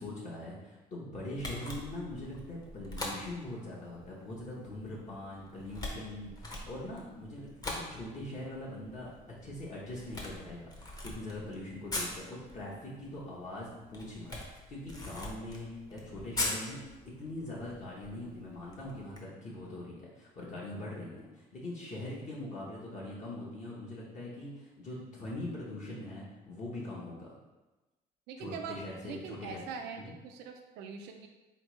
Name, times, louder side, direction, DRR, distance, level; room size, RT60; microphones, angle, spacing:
voice 1, 0.0-9.1 9.4-16.8 17.0-27.3 28.4-29.6 30.0-30.1, left 1 dB, 45° left, -6 dB, 1.0 m, -42 dB
Camera, 1.3-19.2, left 2 dB, 20° left, 0.8 m, -43 dB
voice 2, 28.3-28.8 29.0-31.3, right 6 dB, 85° right, 4 dB, 0.4 m, -42 dB
3.9 x 3.2 x 3.1 m, 1.1 s
cardioid pair, 110°, 17 cm